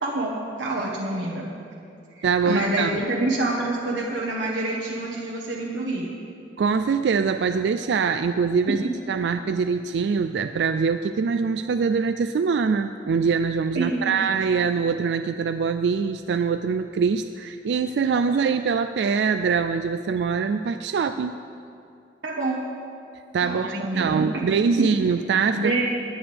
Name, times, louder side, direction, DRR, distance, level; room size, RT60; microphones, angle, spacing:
voice 1, 0.0-1.5 2.1-6.1 13.7-14.2 22.2-22.6 23.4-24.3 24.8-24.9 25.5-25.8, right 2 dB, 90° right, -4 dB, 1.2 m, -27 dB
voice 2, 2.2-3.0 6.6-21.4 23.3-25.7, right 5 dB, 75° right, 9 dB, 0.3 m, -23 dB
18.5 x 9.9 x 3.4 m, 2.5 s
head